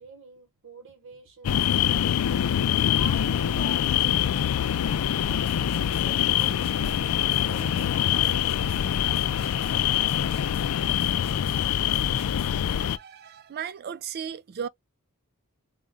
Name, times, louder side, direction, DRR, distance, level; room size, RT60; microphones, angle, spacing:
voice 1, 0.0-2.2 2.9-5.3 5.8-9.0, right 4 dB, 65° right, 0.9 m, -46 dB
sound 1, 1.4-13.0, left 10 dB, 85° left, 0.4 m, -24 dB
sound 2, 5.2-12.6, left 1 dB, 25° left, 1.2 m, -45 dB
voice 2, 12.7-14.7, right 8 dB, 45° right, 0.4 m, -36 dB
3.9 x 2.2 x 3.6 m
head